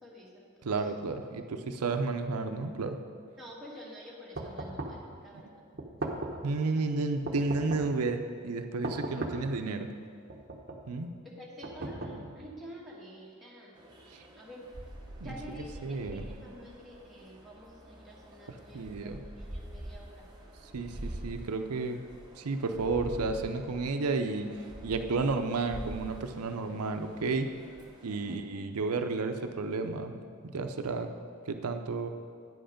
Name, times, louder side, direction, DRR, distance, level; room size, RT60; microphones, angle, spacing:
voice 1, 0.0-0.5 3.4-5.5 11.2-13.8 14.4-14.6 15.2-19.1 19.4-20.3 28.3-28.4, equal, ahead, -5 dB, 1.5 m, -48 dB
voice 2, 0.6-3.0 6.4-9.9 10.9-11.1 14.1-14.2 15.2-15.3 15.8-16.3 18.5-19.2 20.7-22.0 22.4-24.5 24.8-27.5 28.0-30.1 30.4-31.1 31.5-32.1, right 3 dB, 90° right, 7 dB, 0.6 m, -32 dB
sound 1, 4.4-5.1 5.8-6.5 7.3-8.0 8.8-9.6 10.3-10.9 11.6-12.5, right 2 dB, 45° right, 0.8 m, -38 dB
sound 2, 13.8-28.4, right 1 dB, 20° right, 0.9 m, -46 dB
9.4 x 7.8 x 5.1 m, 2.2 s
head